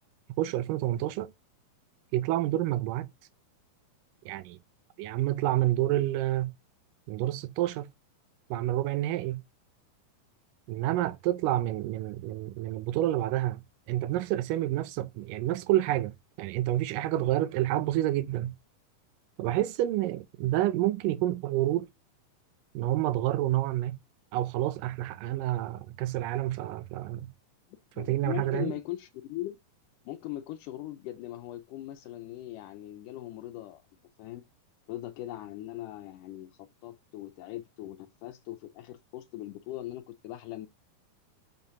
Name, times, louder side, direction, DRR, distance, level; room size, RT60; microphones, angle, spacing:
voice 1, 0.4-1.3 2.1-3.1 4.3-4.6 5.0-6.5 7.1-7.9 8.5-9.4 10.7-18.6 19.4-21.9 22.7-24.0 24.3-27.3 28.0-28.7, right 14 dB, 80° right, 2.2 m, -29 dB
voice 2, 28.0-29.6 30.1-33.8 34.2-34.4 34.9-40.7, left 14 dB, 75° left, 2.2 m, -40 dB
7.3 x 5.9 x 3.9 m
omnidirectional pair, 4.1 m